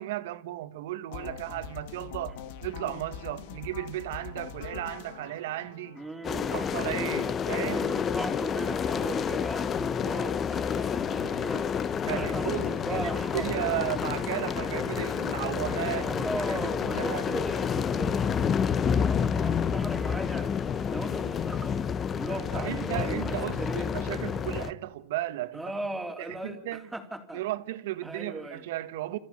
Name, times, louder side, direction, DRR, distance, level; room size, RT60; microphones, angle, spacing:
voice 1, 0.0-6.0 6.3-7.9 12.0-17.3 22.3-25.6 26.2-26.9 27.3-29.2, right 15 dB, 75° right, 1.7 m, -35 dB
sound 1, 1.1-7.1, left 8 dB, 65° left, 2.0 m, -43 dB
voice 2, 5.9-6.7 7.6-13.8 16.0-23.9 25.5-27.4 28.0-28.7, right 2 dB, 10° right, 3.8 m, -38 dB
sound 2, 6.2-24.7, left 7 dB, 30° left, 1.0 m, -29 dB
28.0 x 15.0 x 9.9 m
supercardioid pair, 115°, 0 cm